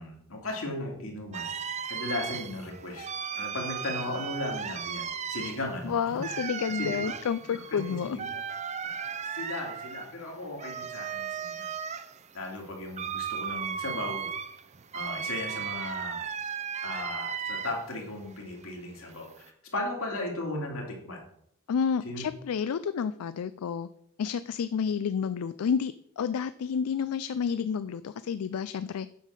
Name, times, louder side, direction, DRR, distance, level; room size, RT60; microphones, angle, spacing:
voice 1, 0.0-1.5 1.9-3.1 3.4-5.9 6.2-6.5 6.8-7.1 7.5-8.4 8.8-8.9 9.3-11.7 12.3-14.2 14.9-16.2 16.8-19.3 19.7-21.2 22.0-22.2, left 2 dB, 65° left, 0 dB, 2.6 m, -36 dB
sound 1, 1.3-18.0 18.3-19.5, right 7 dB, 30° right, 0.5 m, -36 dB
voice 2, 5.8-8.2 21.7-23.9 24.2-29.1, left 7 dB, 85° left, 14 dB, 0.4 m, -30 dB
8.5 x 5.6 x 6.5 m, 0.71 s
head